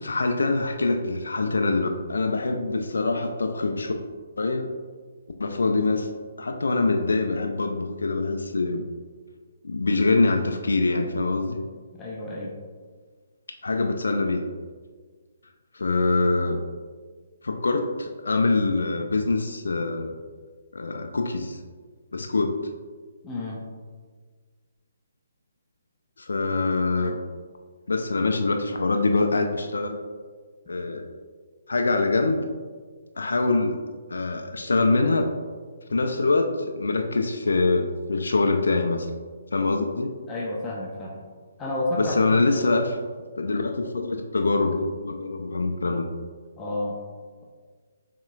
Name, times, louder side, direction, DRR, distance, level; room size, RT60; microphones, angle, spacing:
voice 1, 0.0-3.9 4.4-4.7 5.4-6.1 6.4-8.8 9.6-11.6 13.6-14.5 15.7-16.6 17.4-20.1 20.7-21.6 22.1-22.6 26.2-27.2 27.9-30.0 30.7-31.1 31.7-32.5 33.2-33.8 34.1-35.3 35.9-39.1 39.5-40.1 42.0-42.9 43.4-46.1, left 3 dB, 70° left, 4 dB, 0.4 m, -24 dB
voice 2, 11.9-12.5 23.2-23.6 40.3-41.2 41.6-42.7 46.6-47.0, left 1 dB, 15° left, -4 dB, 0.6 m, -30 dB
6.8 x 2.9 x 2.3 m, 1.5 s
figure-of-eight pair, 135°, 0 cm